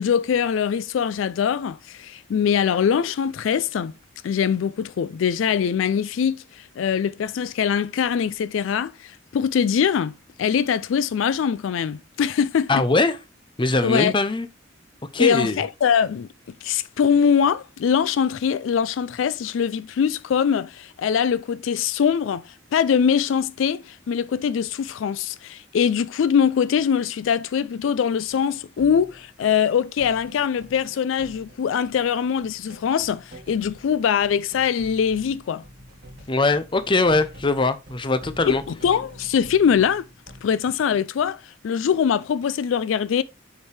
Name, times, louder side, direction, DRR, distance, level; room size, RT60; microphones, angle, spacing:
voice 1, 0.0-3.9 4.2-12.8 13.8-14.1 15.2-16.3 16.6-22.4 22.7-35.6 38.5-40.1 40.4-43.2, left 7 dB, 80° left, 0.3 m, -22 dB
voice 2, 12.7-13.2 13.6-14.5 15.1-15.6 36.3-38.6, left 2 dB, 25° left, 0.6 m, -21 dB
sound 1, 28.3-29.7 30.0-40.4, equal, 50° right, 2.1 m, -46 dB
7.0 x 4.8 x 3.3 m
head